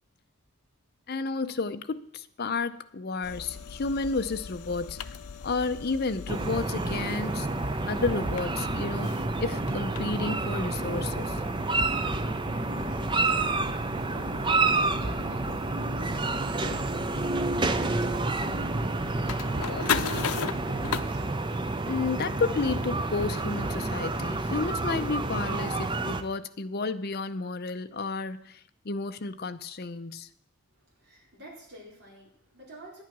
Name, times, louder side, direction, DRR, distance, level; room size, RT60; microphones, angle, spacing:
voice 1, 1.1-5.0 5.4-7.5 7.9-9.1 9.4-11.4 21.9-28.6 28.8-30.3, left 3 dB, 45° left, 11 dB, 0.6 m, -31 dB
sound 1, 3.2-21.0, left 6 dB, 80° left, 0.6 m, -38 dB
sound 2, 6.3-26.2, right 2 dB, 20° right, 0.5 m, -29 dB
voice 2, 12.2-13.5 14.0-15.4 19.0-21.5 30.7-33.0, right 1 dB, 50° right, -3 dB, 4.3 m, -49 dB
10.0 x 8.9 x 6.0 m, 0.71 s
head